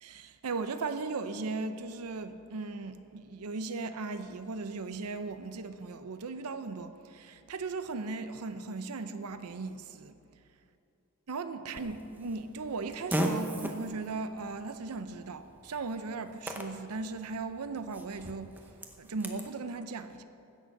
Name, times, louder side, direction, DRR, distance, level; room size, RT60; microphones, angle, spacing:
voice 1, 0.0-10.2 11.3-18.5 19.0-20.2, right 3 dB, 85° right, 0.6 m, -37 dB
Fart, 11.7-19.5, equal, 10° right, 0.7 m, -39 dB
15.5 x 6.6 x 6.6 m
head